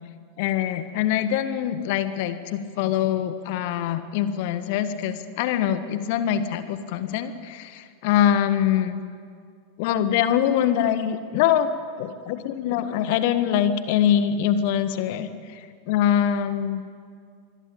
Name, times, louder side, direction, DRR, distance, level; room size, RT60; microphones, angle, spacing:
voice 1, 0.4-9.0 9.8-11.7 12.0-15.6 15.9-16.8, left 10 dB, 50° left, 11 dB, 1.7 m, -24 dB
25.5 x 22.0 x 8.6 m, 2.1 s
figure-of-eight pair, 90°, 0 cm